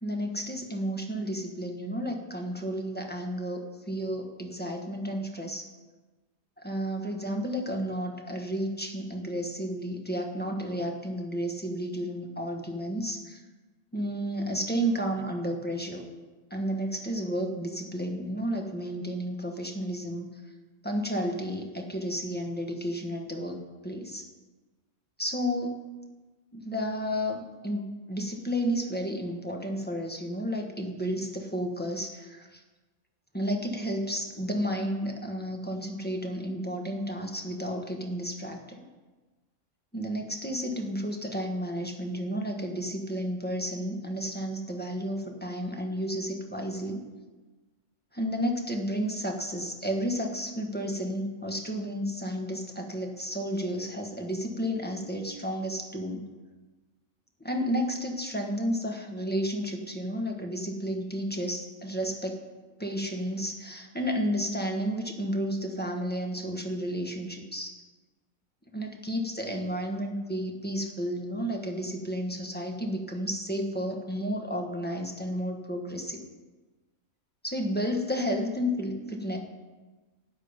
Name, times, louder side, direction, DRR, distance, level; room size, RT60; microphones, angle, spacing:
voice 1, 0.0-5.7 6.6-13.4 13.9-16.0 16.5-20.3 20.8-24.3 25.2-25.8 26.5-32.6 33.3-38.9 39.9-47.0 48.1-56.2 57.4-62.4 62.8-67.8 68.7-76.2 77.4-79.4, equal, 5° left, 2 dB, 1.2 m, -32 dB
12.5 x 9.4 x 5.2 m, 1.2 s
omnidirectional pair, 1.5 m